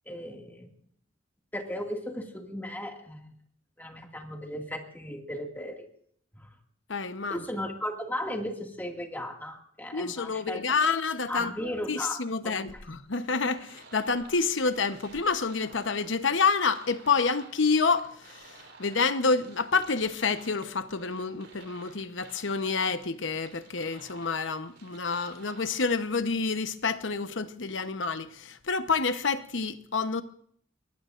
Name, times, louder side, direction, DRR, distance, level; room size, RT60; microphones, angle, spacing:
voice 1, 0.1-0.7 1.5-3.3 3.8-5.9 6.4-6.5 7.3-10.6 11.3-12.6, equal, 10° left, 2.1 m, -36 dB
voice 2, 6.9-7.4 9.9-11.5 11.9-18.5 18.8-30.2, left 4 dB, 70° left, 1.0 m, -28 dB
sound 1, 13.1-26.1, right 4 dB, 60° right, 4.2 m, -53 dB
23.5 x 19.5 x 2.5 m
head